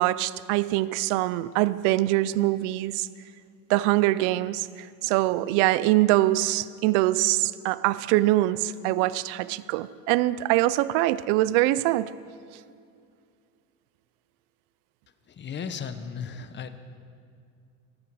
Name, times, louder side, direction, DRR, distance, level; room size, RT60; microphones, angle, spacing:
voice 1, 0.0-3.1 3.7-12.1, right 16 dB, 80° right, 0.5 m, -23 dB
voice 2, 15.3-16.7, left 6 dB, 30° left, 1.0 m, -35 dB
15.0 x 13.5 x 4.8 m
supercardioid pair, 115°, 36 cm